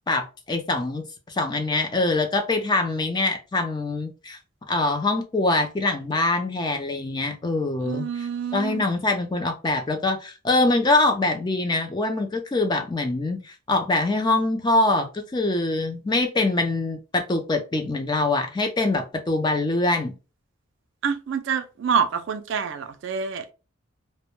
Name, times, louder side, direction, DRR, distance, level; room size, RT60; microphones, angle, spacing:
voice 1, 0.1-4.4 4.7-20.1, left 2 dB, 20° left, 0.3 m, -24 dB
voice 2, 7.8-8.8 21.0-23.5, right 6 dB, 60° right, 0.4 m, -27 dB
2.1 x 2.1 x 2.9 m
head